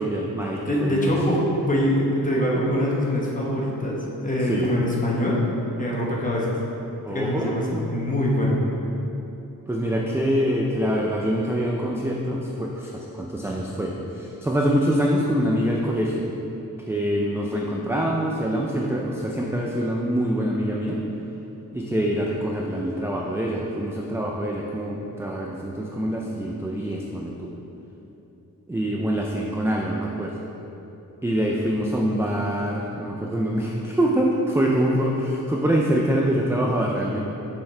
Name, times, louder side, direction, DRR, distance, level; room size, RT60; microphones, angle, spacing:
voice 1, 0.0-1.1 4.5-4.7 7.0-7.5 9.7-16.2 16.9-21.0 21.7-27.5 28.7-30.3 31.2-37.2, equal, 10° right, -2 dB, 0.3 m, -25 dB
voice 2, 0.7-5.4 5.8-6.5 7.1-8.6, equal, 25° left, -4 dB, 1.0 m, -24 dB
7.0 x 5.8 x 3.2 m, 3.0 s
wide cardioid pair, 155°, 35 cm